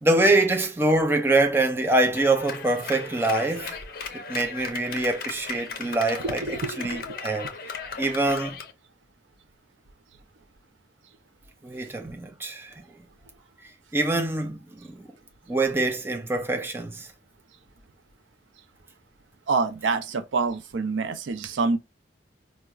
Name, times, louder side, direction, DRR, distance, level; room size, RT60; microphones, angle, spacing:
voice 1, 0.0-3.8 4.1-6.4 6.8-7.5 8.0-8.6 11.6-12.7 13.9-15.1 15.5-17.1, right 2 dB, 15° right, 0.4 m, -24 dB
Clapping, 2.2-8.7, left 5 dB, 50° left, 0.5 m, -37 dB
voice 2, 6.2-7.2 19.5-21.8, right 4 dB, 85° right, 0.4 m, -27 dB
4.5 x 2.1 x 2.3 m
head